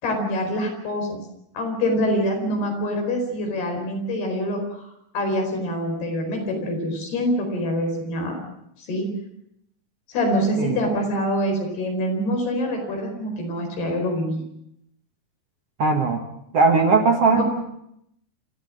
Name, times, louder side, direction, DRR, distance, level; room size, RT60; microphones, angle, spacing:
voice 1, 0.0-1.2 1.5-4.9 5.1-8.4 8.9-9.1 10.1-14.4 17.3-17.4, equal, 90° left, 3 dB, 6.7 m, -25 dB
voice 2, 15.8-16.2 16.5-17.4, right 4 dB, 55° right, 4 dB, 1.9 m, -18 dB
27.0 x 14.5 x 7.6 m, 0.77 s
omnidirectional pair, 4.4 m